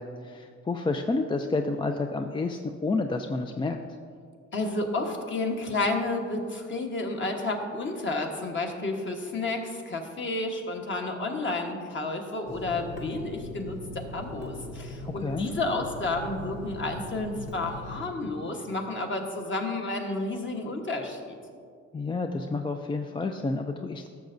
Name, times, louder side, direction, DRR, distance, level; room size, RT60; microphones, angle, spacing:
voice 1, 0.0-3.8 15.0-15.5 21.9-24.1, left 3 dB, 15° left, 5 dB, 0.4 m, -30 dB
voice 2, 4.5-13.8 14.1-21.4, left 2 dB, 40° left, 2 dB, 1.3 m, -31 dB
Water tap faucet / Sink (filling or washing), 12.5-18.0, left 1 dB, 60° left, 1.7 m, -40 dB
14.0 x 6.7 x 2.7 m, 2.1 s
cardioid pair, 90°, 30 cm